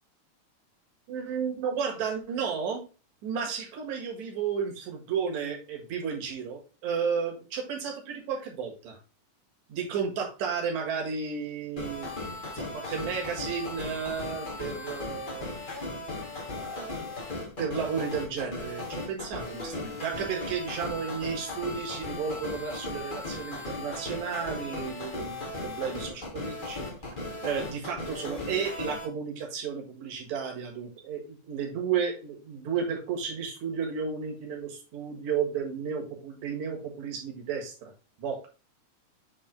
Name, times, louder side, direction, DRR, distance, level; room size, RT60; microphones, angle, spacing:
voice 1, 1.1-2.8 3.2-9.0 9.7-12.1 12.5-15.6 16.6-17.2 17.6-26.9 27.4-37.9 38.2-38.5, right 6 dB, 75° right, 0 dB, 3.0 m, -33 dB
sound 1, 11.8-29.0, left 2 dB, 25° left, 1.0 m, -37 dB
7.7 x 3.7 x 3.8 m, 0.32 s
omnidirectional pair, 3.3 m